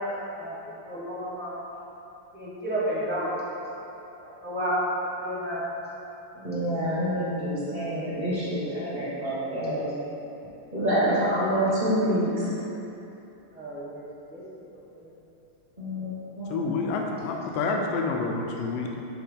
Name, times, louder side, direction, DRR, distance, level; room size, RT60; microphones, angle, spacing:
voice 1, 0.0-0.5 0.8-1.6 2.3-3.3 4.2-5.6 13.5-14.0 14.3-14.4 15.0-15.1, equal, 5° right, -10 dB, 0.9 m, -31 dB
voice 2, 6.4-9.9 10.7-12.5 15.8-16.7, equal, 25° right, -9 dB, 1.4 m, -27 dB
voice 3, 16.5-18.9, left 3 dB, 75° left, 1 dB, 1.3 m, -28 dB
6.4 x 3.0 x 5.5 m, 2.9 s
omnidirectional pair, 2.3 m